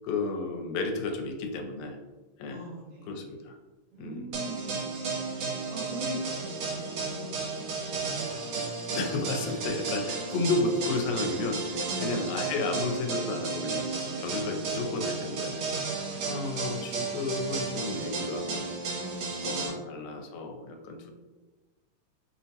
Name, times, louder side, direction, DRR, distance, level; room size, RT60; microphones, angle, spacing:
voice 1, 0.0-2.0 2.4-2.7 3.1-3.5 4.0-4.3 8.9-13.9 14.2-15.6 16.3-18.7 19.4-21.1, left 3 dB, 85° left, 3 dB, 1.9 m, -32 dB
voice 2, 2.5-3.3 3.9-5.1 5.7-8.6 11.8-12.3 14.2-14.5 15.8-16.3 18.9-20.2 21.0-21.1, right 1 dB, 70° right, -5 dB, 1.6 m, -45 dB
sound 1, 4.3-19.7, right 4 dB, 90° right, 2.3 m, -33 dB
5.5 x 2.0 x 2.7 m, 1.2 s
omnidirectional pair, 3.3 m